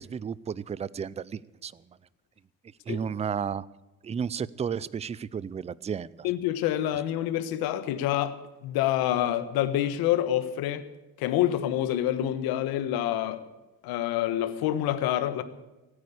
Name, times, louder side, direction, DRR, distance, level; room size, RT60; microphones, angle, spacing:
voice 1, 0.0-1.8 2.9-3.7 4.0-6.3, right 7 dB, 20° right, 20 dB, 0.4 m, -33 dB
voice 2, 6.2-10.9 11.2-13.4 13.8-15.4, left 12 dB, 85° left, 12 dB, 1.4 m, -27 dB
17.5 x 9.5 x 8.2 m, 1.1 s
cardioid pair, 110°, 36 cm